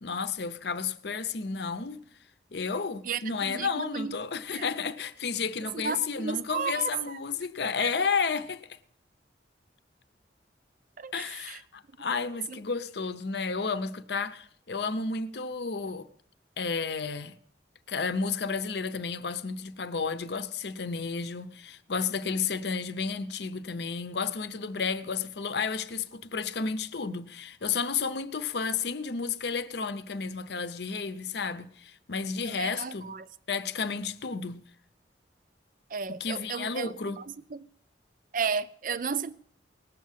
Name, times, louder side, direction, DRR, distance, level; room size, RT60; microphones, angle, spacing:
voice 1, 0.0-2.0 2.5-8.6 11.1-16.1 16.6-17.4 17.9-33.1 33.5-34.7 36.1-37.2, left 5 dB, 65° left, 0.7 m, -32 dB
voice 2, 3.0-4.1 4.5-4.7 5.7-6.9 7.8-7.9 11.0-11.6 12.5-12.6 32.4-33.3 35.9-37.3 37.5-37.7 38.3-39.3, right 5 dB, 50° right, 0.6 m, -33 dB
19.0 x 7.5 x 7.4 m
head